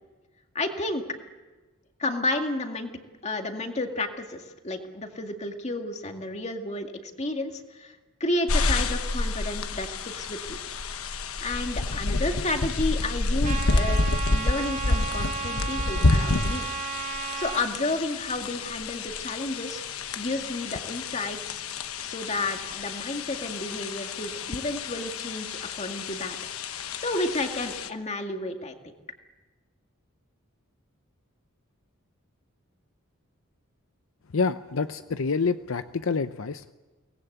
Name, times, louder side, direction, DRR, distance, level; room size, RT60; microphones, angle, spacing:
voice 1, 0.5-1.0 2.0-2.9 3.2-8.0 8.2-10.6 11.4-16.6 17.3-21.6 22.0-26.4 26.7-28.9, left 2 dB, 30° left, 4 dB, 2.1 m, -31 dB
sound 1, 8.5-27.9, left 3 dB, 90° left, 1.1 m, -29 dB
Trumpet, 13.4-17.6, right 6 dB, 40° right, 2.2 m, -34 dB
voice 2, 34.3-36.7, left 4 dB, 70° left, 11 dB, 0.7 m, -27 dB
23.5 x 19.0 x 8.1 m, 1.2 s
head